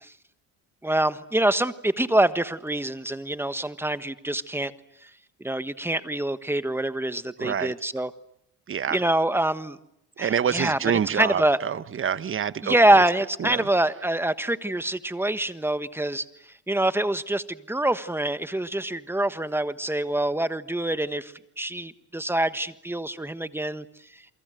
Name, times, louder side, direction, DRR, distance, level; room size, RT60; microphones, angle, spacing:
voice 1, 0.8-4.7 5.4-8.1 8.9-9.8 10.2-10.8 11.1-11.6 12.6-16.2 16.7-23.8, right 1 dB, 5° right, 12 dB, 1.4 m, -25 dB
voice 2, 7.4-7.7 8.7-9.0 10.2-12.7 13.4-13.7, right 8 dB, 35° right, 15 dB, 1.1 m, -26 dB
29.0 x 23.5 x 7.8 m, 0.76 s
cardioid pair, 105°, 36 cm